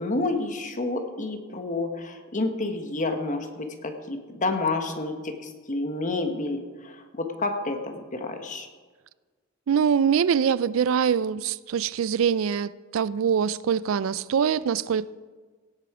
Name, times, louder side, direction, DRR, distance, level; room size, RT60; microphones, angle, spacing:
voice 1, 0.0-8.7, left 2 dB, 40° left, 1.3 m, -29 dB
voice 2, 9.7-15.1, right 7 dB, 75° right, 0.4 m, -24 dB
17.0 x 8.3 x 4.9 m
head